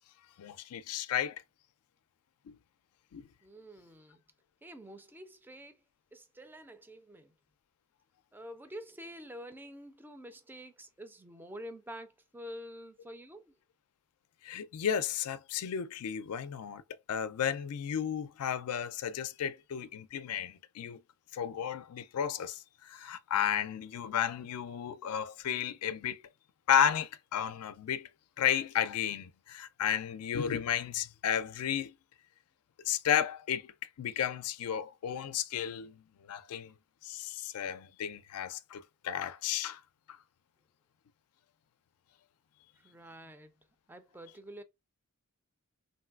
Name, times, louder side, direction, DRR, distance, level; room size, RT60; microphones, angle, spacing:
voice 1, 0.4-1.4 2.5-2.6 3.1-3.3 14.4-16.8 17.1-21.0 21.3-26.2 26.7-28.1 28.4-31.9 32.9-36.0 36.3-36.7 37.0-39.8, left 9 dB, 85° left, 0.4 m, -33 dB
voice 2, 3.4-4.2 4.6-5.8 6.1-7.3 8.3-13.5 42.8-43.5 43.9-44.6, equal, 10° right, 0.4 m, -48 dB
3.1 x 2.6 x 2.3 m
head